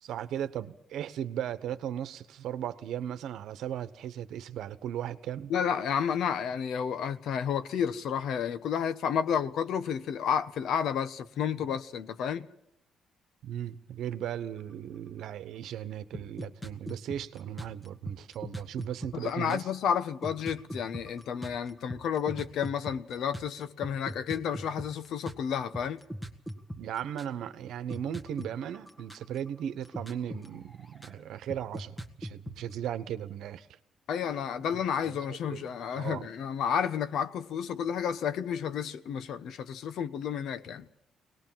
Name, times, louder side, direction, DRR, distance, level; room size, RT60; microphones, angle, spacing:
voice 1, 0.0-5.5 13.4-19.7 26.8-33.7 34.7-35.6 36.0-36.3, right 10 dB, 80° right, 1.1 m, -37 dB
voice 2, 5.5-12.5 19.1-26.0 34.1-40.9, left 8 dB, 75° left, 1.0 m, -31 dB
sound 1, 16.1-19.7 20.2-27.4 27.9-29.6 29.8-31.2 31.5-32.7, equal, 10° left, 1.7 m, -39 dB
22.0 x 19.0 x 7.5 m
cardioid pair, 90°, 0 cm